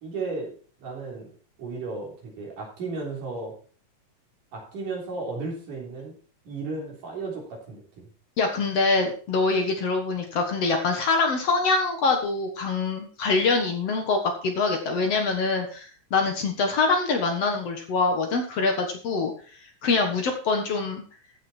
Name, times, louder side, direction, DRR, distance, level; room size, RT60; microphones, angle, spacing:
voice 1, 0.0-1.3 1.6-3.5 4.5-6.2 6.5-8.1, right 3 dB, 75° right, -2 dB, 5.2 m, -34 dB
voice 2, 8.4-19.3 19.8-21.0, left 4 dB, 55° left, 4 dB, 2.3 m, -24 dB
14.5 x 6.4 x 4.3 m, 0.41 s
omnidirectional pair, 3.7 m